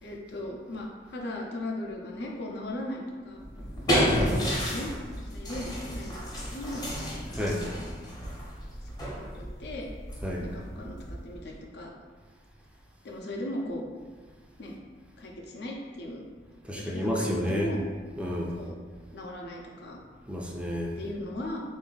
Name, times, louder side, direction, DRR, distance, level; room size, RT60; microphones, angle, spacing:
voice 1, 0.0-3.4 3.9-4.9 5.3-6.9 7.2-7.5 9.0-9.9 10.4-11.9 13.0-13.8 14.6-14.8 15.2-16.2 16.7-17.8 18.5-18.8 19.1-20.0 21.0-21.6, left 1 dB, 65° left, -1 dB, 0.6 m, -38 dB
sound 1, 3.4-11.5, equal, 20° left, 0.7 m, -31 dB
voice 2, 16.7-17.7 18.2-18.6 20.3-20.9, equal, 5° right, -2 dB, 0.4 m, -30 dB
3.3 x 2.6 x 3.8 m, 1.5 s
head